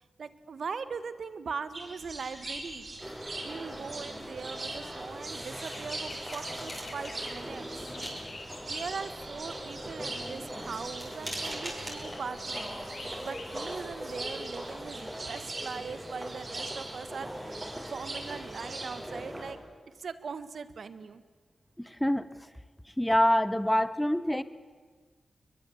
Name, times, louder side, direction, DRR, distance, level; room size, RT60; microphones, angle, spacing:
voice 1, 0.0-2.9 3.4-7.7 8.7-19.6 19.9-21.2, right 5 dB, 75° right, 14 dB, 1.4 m, -40 dB
sound 1, 1.7-19.0, right 2 dB, 50° right, 4.5 m, -42 dB
sound 2, 2.0-14.9, left 3 dB, 60° left, 3.2 m, -50 dB
sound 3, 3.0-19.5, equal, 15° right, 7.7 m, -41 dB
voice 2, 21.9-22.3 23.0-24.4, left 1 dB, 5° left, 15 dB, 1.3 m, -25 dB
22.5 x 21.5 x 8.6 m, 1.5 s
cardioid pair, 55°, 0 cm